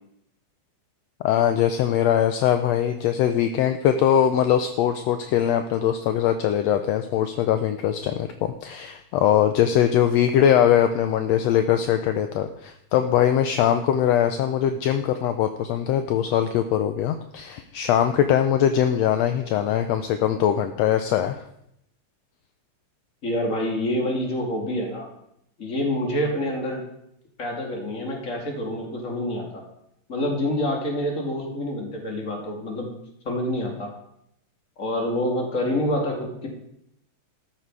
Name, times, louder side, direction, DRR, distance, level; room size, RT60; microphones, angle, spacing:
voice 1, 1.2-21.4, left 10 dB, 75° left, 8 dB, 1.7 m, -21 dB
voice 2, 23.2-25.1 25.6-26.8 27.4-29.6 30.1-32.9 33.2-33.9 34.8-36.5, left 1 dB, 25° left, 0 dB, 2.6 m, -27 dB
13.5 x 10.0 x 4.7 m, 0.77 s
omnidirectional pair, 3.4 m